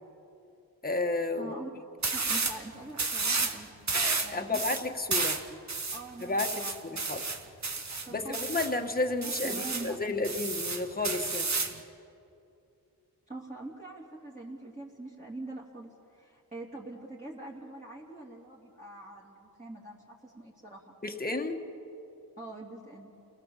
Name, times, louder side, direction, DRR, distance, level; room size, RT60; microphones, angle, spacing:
voice 1, 0.8-1.5 3.9-5.3 6.2-7.2 8.1-11.5 21.0-21.6, left 2 dB, 25° left, 4 dB, 1.7 m, -32 dB
voice 2, 1.4-1.7 2.1-3.7 4.2-4.8 5.2-5.6 5.9-6.8 8.0-8.4 9.2-10.0 13.3-21.0 22.4-23.1, right 2 dB, 20° right, -6 dB, 3.2 m, -44 dB
sound 1, 2.0-2.6 2.9-3.6 3.9-8.7 9.2-9.9 10.2-11.8, right 4 dB, 45° right, 1.6 m, -31 dB
29.5 x 18.5 x 7.5 m, 2.7 s
wide cardioid pair, 75°, 38 cm